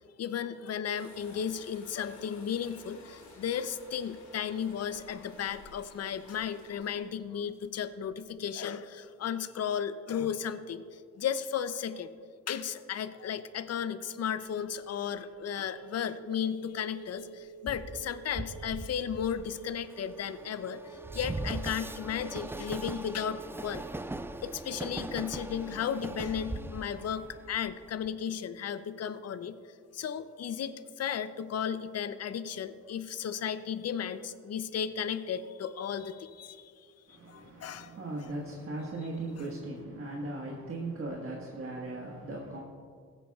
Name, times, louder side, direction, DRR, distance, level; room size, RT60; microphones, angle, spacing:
voice 1, 0.2-12.1 12.5-23.9 24.4-29.6 29.9-36.7 37.1-38.0, left 8 dB, 55° left, 12 dB, 0.7 m, -35 dB
sound 1, 0.9-8.3, left 2 dB, 70° left, 2.5 m, -54 dB
Telephone, 14.4-21.7, right 6 dB, 65° right, 2.1 m, -50 dB
Train, 17.7-28.1, right 2 dB, 10° right, 0.4 m, -40 dB
voice 2, 37.1-42.6, right 2 dB, 45° right, -3 dB, 1.5 m, -38 dB
16.0 x 8.9 x 2.4 m, 2.1 s
cardioid pair, 65°, 30 cm